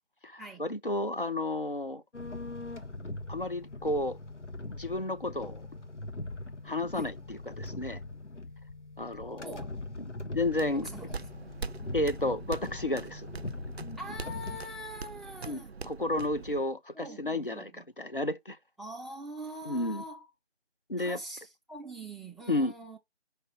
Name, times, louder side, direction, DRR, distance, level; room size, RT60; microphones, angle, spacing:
voice 1, 0.2-2.0 3.3-4.2 4.7-5.6 6.7-8.0 9.0-9.5 10.3-10.9 11.9-13.3 15.5-17.7 18.0-18.6 19.7-20.0 20.9-21.2 22.5-22.7, left 2 dB, 50° left, 0.7 m, -32 dB
sound 1, 2.1-14.6, left 2 dB, 90° left, 1.3 m, -41 dB
voice 2, 9.4-9.8 10.7-11.5 14.0-15.7 16.9-17.8 18.8-20.3 21.0-23.0, right 1 dB, ahead, 0.6 m, -44 dB
sound 2, 10.4-16.6, right 4 dB, 65° right, 0.4 m, -43 dB
5.6 x 3.4 x 5.6 m
figure-of-eight pair, 180°, 35 cm